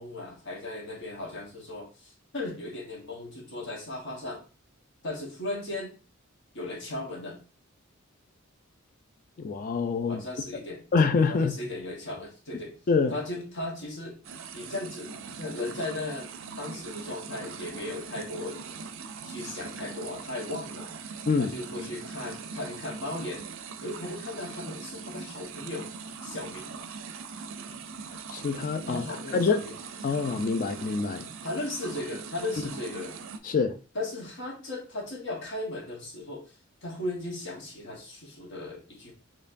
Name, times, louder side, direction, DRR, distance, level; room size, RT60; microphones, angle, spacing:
voice 1, 0.0-4.4 5.0-5.9 6.5-7.4 10.1-10.8 11.3-12.8 13.1-14.2 14.5-16.3 16.6-18.6 19.3-20.9 21.4-23.4 23.8-25.9 26.2-26.7 28.9-29.7 31.4-33.1 33.9-36.5 36.8-39.1, left 2 dB, 60° left, 1.3 m, -36 dB
voice 2, 9.4-10.2 10.9-11.6 12.9-13.1 21.3-21.5 28.3-29.0 29.3-29.6 30.0-31.2 33.4-33.8, left 4 dB, 40° left, 0.3 m, -25 dB
sound 1, 14.2-33.4, right 5 dB, 65° right, 0.4 m, -41 dB
4.3 x 3.0 x 2.5 m
head